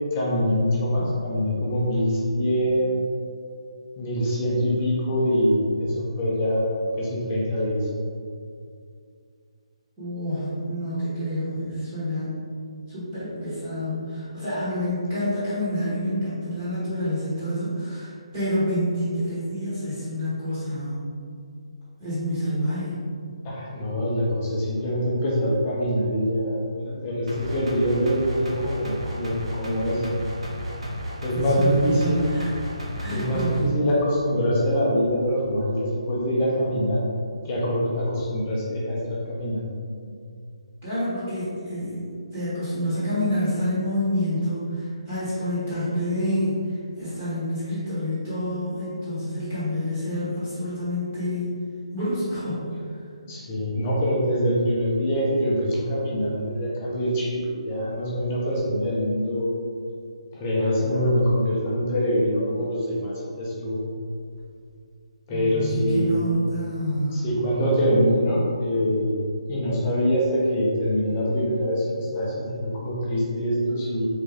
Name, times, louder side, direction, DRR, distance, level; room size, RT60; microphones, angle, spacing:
voice 1, 0.1-3.0 4.0-6.6 7.0-7.9 23.4-30.0 31.2-32.2 33.1-37.0 37.4-39.7 53.2-59.5 60.3-63.8 65.3-66.2 67.1-69.1 69.5-74.1, equal, 15° left, -6 dB, 0.7 m, -24 dB
voice 2, 10.0-12.5 12.9-21.0 22.0-23.0 31.3-32.5 33.0-33.7 40.8-42.1 42.3-51.5 51.9-52.7 65.3-67.2, equal, 20° right, -13 dB, 1.2 m, -28 dB
sound 1, 27.3-33.6, equal, 70° right, 1.2 m, -33 dB
3.9 x 3.6 x 3.4 m, 2.3 s
hypercardioid pair, 175°, 3 cm